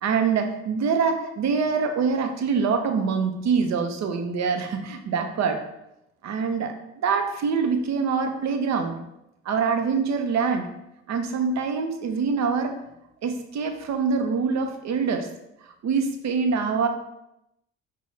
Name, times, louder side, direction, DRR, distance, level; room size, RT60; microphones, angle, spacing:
voice 1, 0.0-5.6 6.2-9.0 9.4-10.7 11.1-12.8 13.2-15.3 15.6-16.9, right 5 dB, 65° right, 5 dB, 0.6 m, -25 dB
5.2 x 2.2 x 3.2 m, 0.85 s
cardioid pair, 90°, 30 cm